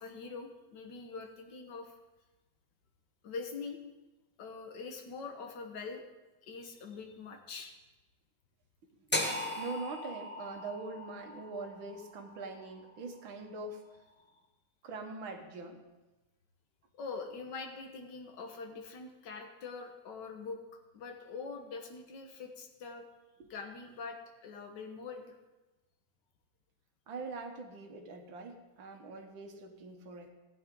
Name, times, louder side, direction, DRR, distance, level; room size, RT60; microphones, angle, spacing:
voice 1, 0.0-2.0 3.2-3.8 4.4-6.0 6.4-7.7 17.0-20.6 20.9-23.1 23.5-25.4, left 4 dB, 65° left, 3 dB, 1.8 m, -44 dB
sound 1, 9.1-13.2, left 1 dB, 10° left, 0.4 m, -38 dB
voice 2, 9.6-13.8 14.8-15.9 23.4-23.5 27.1-30.3, right 3 dB, 75° right, 4 dB, 2.0 m, -43 dB
15.5 x 9.9 x 3.8 m, 1.1 s
omnidirectional pair, 2.2 m